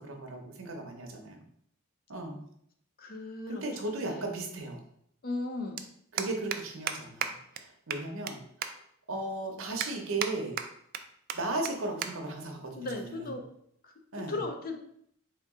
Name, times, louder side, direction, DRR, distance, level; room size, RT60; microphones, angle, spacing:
voice 1, 0.0-1.4 2.1-2.4 3.5-4.8 6.1-8.8 9.1-10.6 11.3-13.3 14.1-14.4, right 2 dB, 70° right, 3 dB, 0.8 m, -36 dB
voice 2, 3.0-3.6 4.1-4.2 5.2-5.8 12.7-13.5 13.8-13.9 14.3-14.8, left 2 dB, 45° left, 4 dB, 0.5 m, -36 dB
sound 1, 5.0-5.1 5.3-5.5 5.8-5.9 6.2-6.6 6.9-7.0 7.2-7.3 7.6-7.7 7.9-8.3 8.6-8.7 9.2-9.3 9.8-10.3 10.6-11.0 11.3-11.4 11.6-11.7 12.0-12.1 12.4-12.7 13.4-13.7, right 8 dB, 45° right, 0.3 m, -33 dB
3.5 x 2.9 x 3.6 m, 0.68 s
head